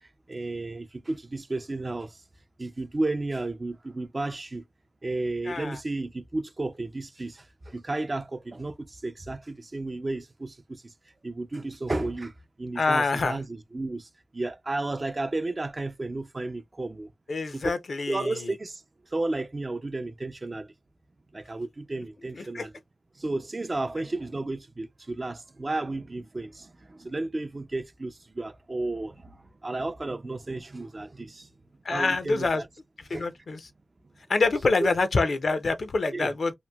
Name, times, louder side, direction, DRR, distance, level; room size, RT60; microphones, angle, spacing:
voice 1, 0.3-2.2 2.6-4.7 5.0-10.9 11.2-17.1 17.5-17.7 18.1-18.8 19.1-20.7 21.3-22.7 23.2-31.5 31.9-32.7 33.1-33.3 34.8-34.9 36.1-36.3, right 2 dB, 35° right, 0.4 m, -33 dB
voice 2, 5.5-5.8 12.8-13.4 17.3-18.5 22.3-22.7 31.8-32.6 33.1-33.6 34.3-36.5, left 3 dB, 70° left, 0.5 m, -26 dB
2.9 x 2.5 x 2.2 m
wide cardioid pair, 75°, 0 cm